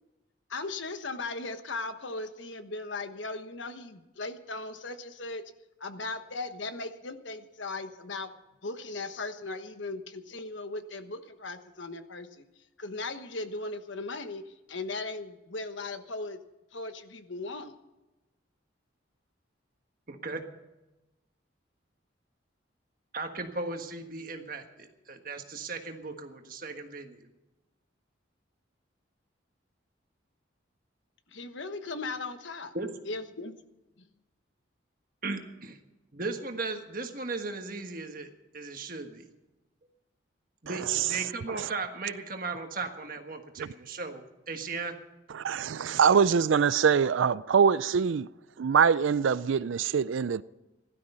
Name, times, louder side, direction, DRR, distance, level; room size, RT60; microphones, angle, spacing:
voice 1, 0.5-5.4 5.8-8.3 8.6-12.4 12.8-16.4 16.7-17.7 31.3-32.7 33.1-33.6, left 3 dB, 70° left, 1.2 m, -38 dB
voice 2, 20.1-20.4 23.1-27.3 32.7-32.9 35.2-35.8 36.1-39.3 40.6-44.9, right 3 dB, 45° right, 1.5 m, -37 dB
voice 3, 45.3-48.3 48.6-50.4, right 6 dB, 80° right, 0.4 m, -24 dB
16.5 x 12.5 x 5.6 m
head